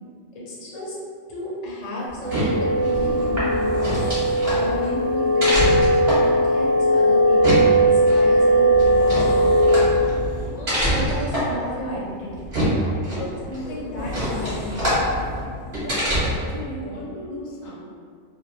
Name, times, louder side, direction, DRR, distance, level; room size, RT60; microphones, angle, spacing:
voice 1, 0.3-1.0 1.3-3.7 4.4-5.8 6.2-9.2 10.4-12.5 13.5-15.0, left 1 dB, 40° left, -6 dB, 0.6 m, -32 dB
sound 1, 2.1-16.6, equal, 35° right, 1.1 m, -26 dB
sound 2, 2.2-9.8, right 1 dB, 70° right, 1.0 m, -19 dB
voice 2, 13.2-14.1 15.7-17.9, left 1 dB, 75° left, -4 dB, 1.0 m, -36 dB
2.6 x 2.2 x 3.0 m, 2.2 s
omnidirectional pair, 1.4 m